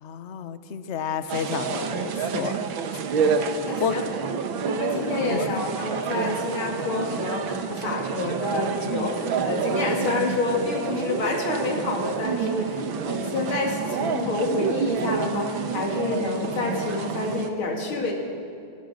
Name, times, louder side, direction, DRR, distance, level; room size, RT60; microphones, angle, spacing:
voice 1, 0.0-2.6 3.8-4.0 5.2-5.6, left 7 dB, 45° left, 11 dB, 1.0 m, -30 dB
sound 1, 1.3-17.5, right 6 dB, 75° right, 1.9 m, -28 dB
voice 2, 3.7-4.0 4.7-18.1, left 3 dB, 90° left, 0 dB, 3.7 m, -28 dB
27.5 x 17.0 x 6.5 m, 2.5 s
omnidirectional pair, 2.2 m